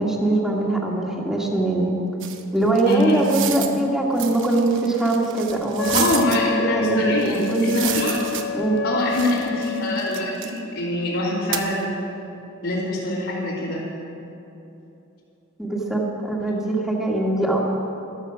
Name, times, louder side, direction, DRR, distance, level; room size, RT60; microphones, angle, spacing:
voice 1, 0.0-1.9 2.5-6.1 6.5-8.0 8.5-8.9 15.6-17.6, right 2 dB, 5° right, -2 dB, 2.0 m, -22 dB
sound 1, 2.2-3.8 4.1-6.4 7.2-8.8 9.1-10.6 11.5-11.7, right 9 dB, 60° right, 1.0 m, -31 dB
voice 2, 2.8-3.2 5.9-7.4 7.6-8.1 8.8-11.9 12.6-13.8, left 2 dB, 75° left, -9 dB, 3.3 m, -24 dB
Wind instrument woodwind instrument, 5.8-10.2, left 7 dB, 55° left, 0.6 m, -29 dB
14.5 x 12.5 x 6.2 m, 2.9 s
head